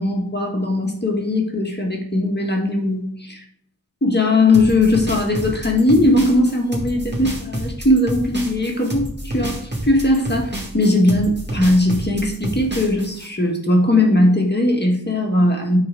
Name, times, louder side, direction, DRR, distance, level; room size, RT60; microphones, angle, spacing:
voice 1, 0.0-3.4 4.0-15.8, left 1 dB, 25° left, 0 dB, 1.7 m, -19 dB
sound 1, 4.5-13.3, right 1 dB, 25° right, 1.9 m, -29 dB
9.5 x 4.0 x 5.3 m, 0.65 s
wide cardioid pair, 65°, 39 cm